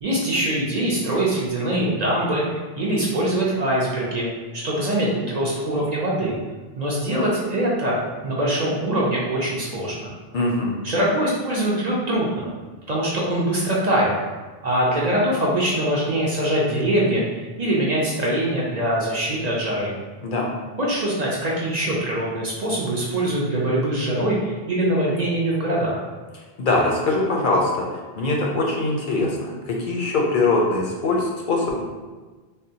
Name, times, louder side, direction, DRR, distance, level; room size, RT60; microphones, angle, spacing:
voice 1, 0.0-6.4 6.8-10.1 10.8-12.5 12.9-14.1 14.6-19.9 20.8-26.0, right 1 dB, 50° right, -5 dB, 0.6 m, -23 dB
voice 2, 10.3-10.7 20.2-20.5 26.6-31.8, left 2 dB, 60° left, -2 dB, 0.6 m, -22 dB
3.6 x 2.2 x 2.7 m, 1.3 s
omnidirectional pair, 1.0 m